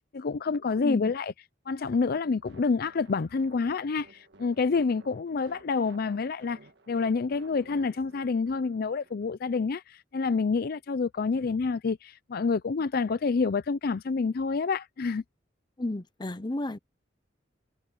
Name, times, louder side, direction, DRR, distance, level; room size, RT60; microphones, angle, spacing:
voice 1, 0.0-1.3 1.7-6.6 6.9-15.2, left 4 dB, 55° left, 0.5 m, -28 dB
voice 2, 0.8-1.1 15.8-16.8, left 1 dB, 25° left, 0.8 m, -32 dB
sound 1, 1.9-9.3, right 2 dB, 65° right, 1.8 m, -55 dB
head